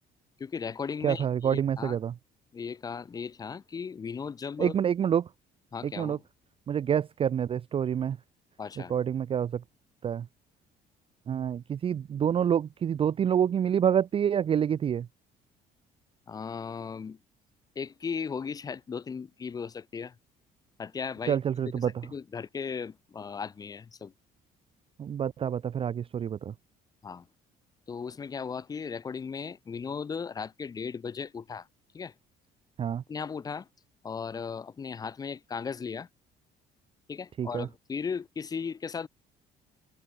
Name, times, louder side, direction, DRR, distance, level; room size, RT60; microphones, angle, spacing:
voice 1, 0.4-2.0 2.5-4.7 5.7-6.2 8.6-8.9 16.3-17.2 17.8-20.1 20.8-21.4 21.8-24.1 27.0-27.2 27.9-31.7 31.9-32.1 33.1-33.7 34.0-36.1 37.1-39.1, left 6 dB, 20° left, 0.4 m, -36 dB
voice 2, 1.0-2.1 4.6-5.3 5.8-6.2 6.7-8.2 8.9-9.6 10.0-10.2 11.3-15.1 21.3-21.9 25.0-26.5 32.8-33.0 37.4-37.7, right 8 dB, 35° right, 0.4 m, -27 dB
cardioid pair, 110°, 17 cm